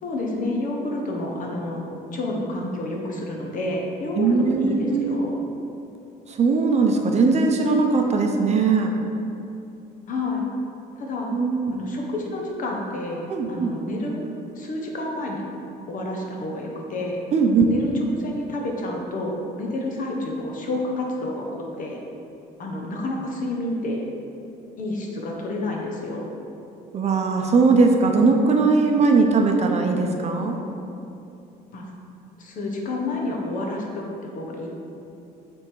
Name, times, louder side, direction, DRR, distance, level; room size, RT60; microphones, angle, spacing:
voice 1, 0.0-1.8 2.1-5.3 10.1-10.5 11.0-11.3 11.7-14.3 14.5-15.4 15.9-17.2 17.7-22.0 22.6-24.0 24.8-26.3 31.7-31.8 32.4-34.7, left 2 dB, 50° left, 0 dB, 1.2 m, -29 dB
voice 2, 4.2-5.2 6.3-8.9 11.3-11.7 13.3-13.7 17.3-17.6 26.9-30.6, right 4 dB, 40° right, 3 dB, 0.7 m, -19 dB
7.9 x 3.6 x 4.6 m, 2.7 s
cardioid pair, 110°, 17 cm